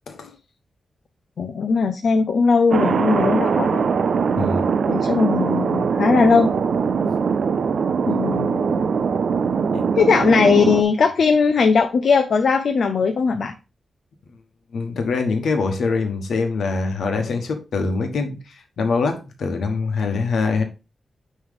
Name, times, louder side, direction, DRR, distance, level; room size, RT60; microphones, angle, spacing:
voice 1, 1.4-3.8 4.9-6.5 8.1-8.8 10.0-13.5, left 5 dB, 55° left, 0.5 m, -19 dB
Thunder, 2.7-10.8, right 6 dB, 55° right, 0.4 m, -21 dB
voice 2, 4.3-4.6 9.7-9.9 14.7-18.4 18.8-20.6, left 4 dB, 80° left, 1.2 m, -23 dB
9.5 x 3.2 x 3.6 m
wide cardioid pair, 175°, 0 cm